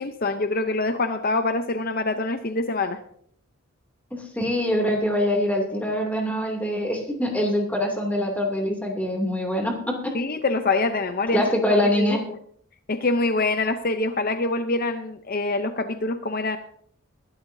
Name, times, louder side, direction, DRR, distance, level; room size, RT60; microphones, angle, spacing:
voice 1, 0.0-3.0 10.1-11.4 12.0-12.2 12.9-16.6, left 3 dB, 45° left, 8 dB, 0.7 m, -25 dB
voice 2, 4.1-10.1 11.3-12.2, left 1 dB, 5° left, 1 dB, 2.6 m, -24 dB
22.0 x 12.0 x 2.7 m, 0.65 s
head